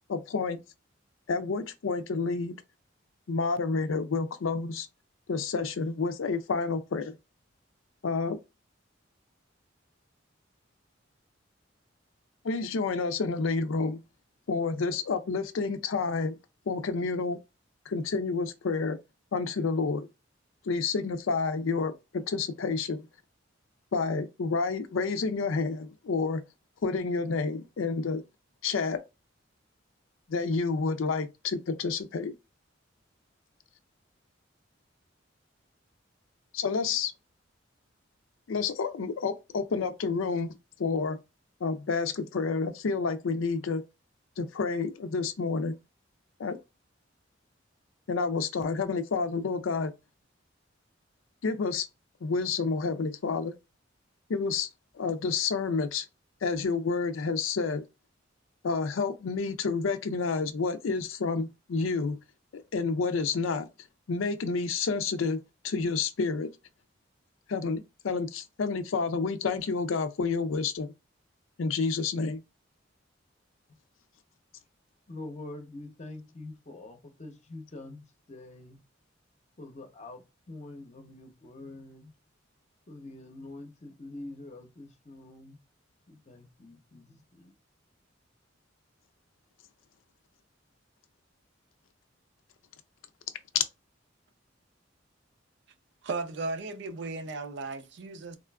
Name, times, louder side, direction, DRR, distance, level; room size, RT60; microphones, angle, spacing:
voice 1, 0.1-0.6 1.3-2.5 3.3-4.9 5.3-7.1 8.0-8.4 12.4-14.0 14.5-16.4 16.7-17.4 17.9-19.0 19.3-20.1 20.7-23.1 23.9-26.4 26.8-28.2 28.6-29.0 30.3-32.3 36.5-37.1 38.5-40.5 40.8-41.2 41.6-43.8 44.4-45.8 46.4-46.6 48.1-49.9 51.4-51.9 52.2-53.5 54.3-54.7 54.9-56.1 56.4-57.8 58.6-62.2 62.5-63.7 64.1-65.4 65.6-66.5 67.5-70.9 71.6-72.4 93.5-93.6, left 4 dB, 90° left, 0.5 m, -29 dB
voice 2, 75.1-78.8 79.6-82.1 82.9-85.6 86.1-87.5, left 2 dB, 35° left, 0.7 m, -45 dB
voice 3, 96.0-98.4, right 3 dB, 65° right, 0.5 m, -35 dB
3.6 x 2.4 x 2.2 m
head